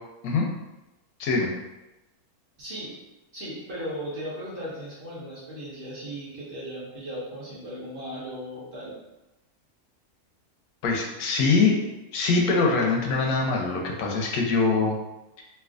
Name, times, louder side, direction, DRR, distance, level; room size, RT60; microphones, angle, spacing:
voice 1, 2.6-2.9 3.3-9.0, equal, 40° right, -8 dB, 1.2 m, -37 dB
voice 2, 10.8-11.8 12.1-14.9, left 4 dB, 80° left, -1 dB, 1.1 m, -23 dB
3.2 x 2.8 x 2.4 m, 0.98 s
omnidirectional pair, 1.6 m